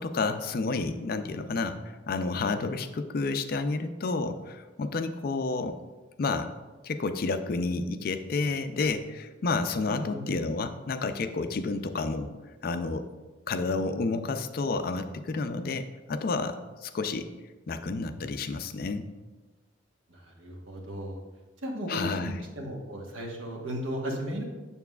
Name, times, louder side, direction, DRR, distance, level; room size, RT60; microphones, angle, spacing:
voice 1, 0.0-1.8 2.1-5.8 6.2-6.5 6.8-12.3 12.6-13.1 13.5-17.3 17.7-19.1 21.9-22.4, left 3 dB, 50° left, 9 dB, 0.4 m, -30 dB
voice 2, 9.9-10.2 20.1-21.2 21.6-24.4, equal, 85° right, 1 dB, 1.2 m, -35 dB
7.0 x 6.8 x 2.3 m, 1.2 s
head